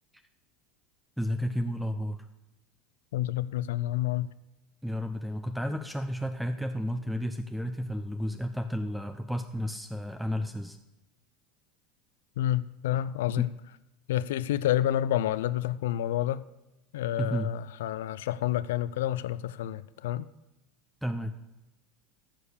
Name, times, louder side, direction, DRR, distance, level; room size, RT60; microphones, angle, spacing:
voice 1, 1.2-2.3 4.8-10.8 13.4-13.5 17.2-17.5 21.0-21.3, equal, ahead, 7 dB, 0.7 m, -32 dB
voice 2, 3.1-4.3 12.4-13.5 14.1-16.4 16.9-20.3, left 12 dB, 80° left, 17 dB, 0.4 m, -29 dB
14.5 x 4.9 x 8.3 m, 0.94 s
hypercardioid pair, 90°, 0 cm